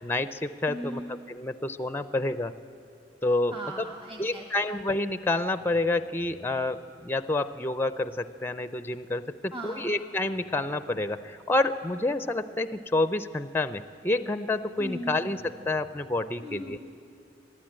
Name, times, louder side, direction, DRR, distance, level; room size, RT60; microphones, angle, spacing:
voice 1, 0.0-2.5 3.2-3.9 4.2-16.8, left 2 dB, 10° left, 12 dB, 0.4 m, -29 dB
voice 2, 0.7-1.1 3.5-4.5 9.5-9.9 14.8-15.2 16.4-16.8, equal, 30° right, 0 dB, 1.9 m, -38 dB
sound 1, 3.0-3.4 5.5-6.4 10.2-11.3 14.6-15.8, left 1 dB, 75° right, 4.6 m, -56 dB
22.0 x 13.5 x 8.8 m, 2.4 s
head